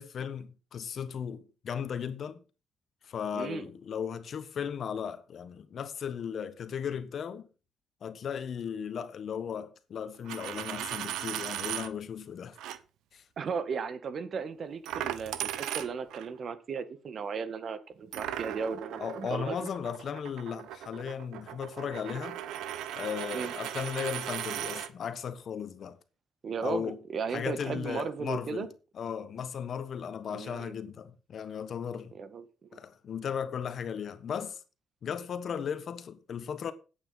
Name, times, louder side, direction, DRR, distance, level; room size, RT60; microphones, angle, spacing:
voice 1, 0.0-2.4 3.0-7.5 8.0-12.6 13.1-13.2 19.0-22.4 22.9-26.0 26.6-27.0 27.3-32.1 32.7-34.6 35.0-36.7, left 7 dB, 60° left, 1.3 m, -36 dB
voice 2, 3.3-3.7 13.4-19.6 23.3-23.5 26.4-28.7 30.3-30.8 32.1-32.8, right 5 dB, 55° right, 1.6 m, -36 dB
Coin (dropping), 10.1-11.9 12.6-12.8 14.9-16.3 18.1-24.9, right 12 dB, 90° right, 0.9 m, -37 dB
9.4 x 8.7 x 5.7 m
cardioid pair, 90°, 0 cm